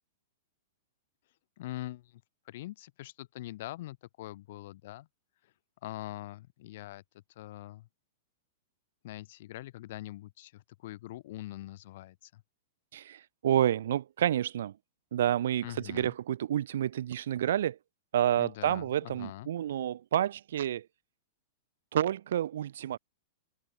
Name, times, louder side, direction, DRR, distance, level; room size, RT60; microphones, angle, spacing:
voice 1, 1.6-2.2 2.5-5.1 5.8-7.0 7.4-7.9 9.0-12.4 15.6-16.1 18.4-19.5, left 16 dB, 50° left, 4.2 m, -43 dB
voice 2, 12.9-14.7 15.1-17.8 18.1-20.9 21.9-23.0, right 11 dB, 70° right, 1.2 m, -29 dB
supercardioid pair, 170°, 0 cm